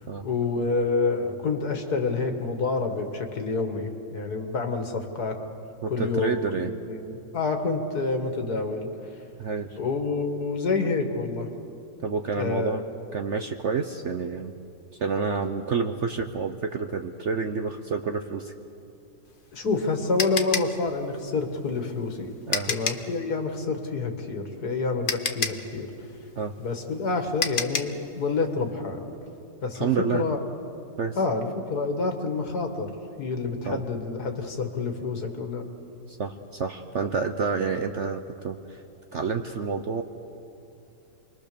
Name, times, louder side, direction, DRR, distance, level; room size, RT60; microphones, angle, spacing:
voice 1, 0.2-5.4 5.9-6.4 6.6-8.9 9.8-11.5 12.4-12.8 19.5-22.4 22.7-25.9 26.6-29.1 29.6-30.4 31.2-32.9 33.2-35.6, left 3 dB, 60° left, 5 dB, 2.3 m, -28 dB
voice 2, 5.8-6.7 9.4-9.8 12.0-12.8 13.1-14.5 15.0-18.5 22.5-22.7 26.4-26.5 29.7-30.2 31.0-31.2 33.6-33.8 36.1-38.8 39.1-40.0, right 5 dB, 55° right, 6 dB, 0.9 m, -29 dB
sound 1, 19.3-23.1 24.6-24.7 25.1-28.0, left 5 dB, 40° left, 0.8 m, -30 dB
28.0 x 21.5 x 6.9 m, 2.7 s
omnidirectional pair, 1.9 m